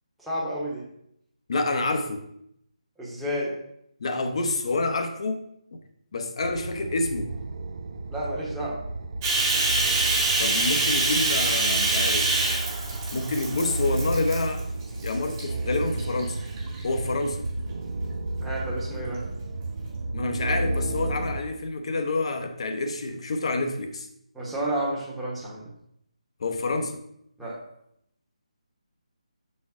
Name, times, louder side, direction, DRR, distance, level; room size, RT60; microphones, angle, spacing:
voice 1, 0.2-0.8 3.0-3.5 8.1-8.8 18.4-19.2 24.3-25.7 27.4-27.6, right 1 dB, 5° right, -8 dB, 1.2 m, -31 dB
voice 2, 1.5-2.2 4.0-5.4 5.7-5.8 6.1-7.3 10.4-12.3 13.1-14.6 15.0-16.4 16.8-17.5 20.1-24.1 26.4-27.0, left 2 dB, 50° left, 6 dB, 0.8 m, -28 dB
sound 1, 6.4-21.4, right 2 dB, 55° right, 0.6 m, -32 dB
Bathtub (filling or washing), 9.2-14.6 15.0-15.4 16.0-16.8, right 2 dB, 20° right, 1.6 m, -25 dB
6.7 x 4.2 x 3.6 m, 0.75 s
figure-of-eight pair, 155°, 4 cm